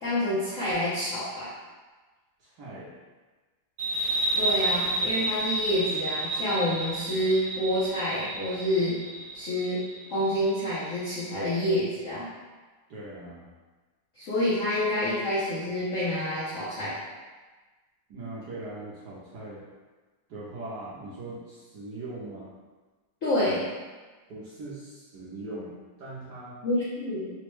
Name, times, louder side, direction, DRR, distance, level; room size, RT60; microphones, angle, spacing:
voice 1, 0.0-1.5 4.4-9.0 9.3-9.8 10.1-12.3 14.2-17.0 23.2-23.7 26.6-27.3, left 1 dB, 70° left, -10 dB, 0.7 m, -28 dB
voice 2, 2.4-2.9 12.9-13.5 18.1-19.6 20.3-22.5 24.3-26.6, right 2 dB, 65° right, -8 dB, 1.0 m, -40 dB
sound 1, 3.8-11.0, right 1 dB, 45° right, 1.3 m, -31 dB
4.0 x 2.1 x 3.1 m, 1.3 s
omnidirectional pair, 2.3 m